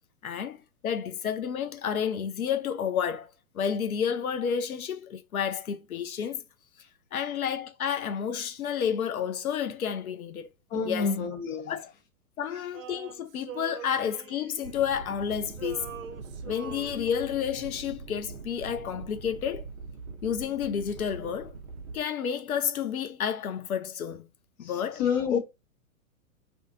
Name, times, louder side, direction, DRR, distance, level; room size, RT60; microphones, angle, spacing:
voice 1, 0.2-6.4 7.1-10.5 10.8-11.2 11.7-11.9 12.4-15.8 16.4-19.7 20.2-21.5 21.9-24.3 24.6-25.0 25.3-25.4, left 8 dB, 75° left, 0.6 m, -30 dB
voice 2, 10.7-11.8 24.6-24.7 25.0-25.4, left 6 dB, 30° left, 0.7 m, -28 dB
Male singing, 12.7-15.2 15.5-17.6, right 8 dB, 65° right, 0.6 m, -43 dB
sound 1, 14.6-22.0, right 4 dB, 15° right, 0.4 m, -43 dB
2.4 x 2.4 x 2.6 m
figure-of-eight pair, 110°, 43 cm